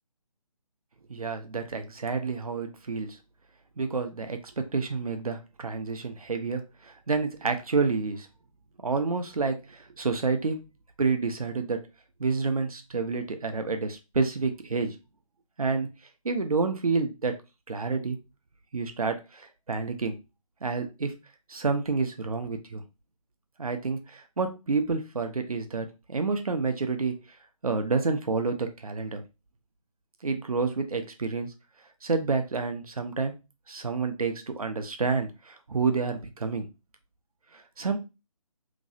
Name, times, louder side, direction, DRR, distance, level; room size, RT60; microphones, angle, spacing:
voice 1, 1.1-3.2 3.8-8.3 8.8-10.6 11.0-11.8 12.2-15.0 15.6-15.9 16.2-17.4 17.7-18.2 18.7-20.1 20.6-21.1 21.5-22.8 23.6-27.1 27.6-29.2 30.2-31.5 32.0-33.3 33.7-36.7 37.5-38.0, right 4 dB, 70° right, 6 dB, 0.7 m, -29 dB
3.0 x 2.7 x 2.6 m, 0.27 s
figure-of-eight pair, 150°, 19 cm